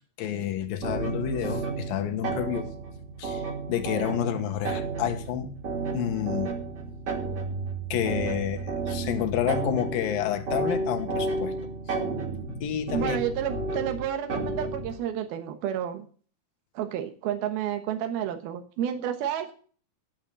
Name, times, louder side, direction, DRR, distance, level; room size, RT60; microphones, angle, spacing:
voice 1, 0.2-2.7 3.2-5.5 5.9-6.6 7.9-11.5 11.9-12.0 12.6-13.2, left 10 dB, 75° left, 3.0 m, -29 dB
sound 1, 0.8-15.0, right 3 dB, 40° right, 3.0 m, -32 dB
voice 2, 12.9-16.1 16.7-19.5, right 10 dB, 80° right, 3.1 m, -30 dB
10.5 x 9.0 x 6.9 m
omnidirectional pair, 4.4 m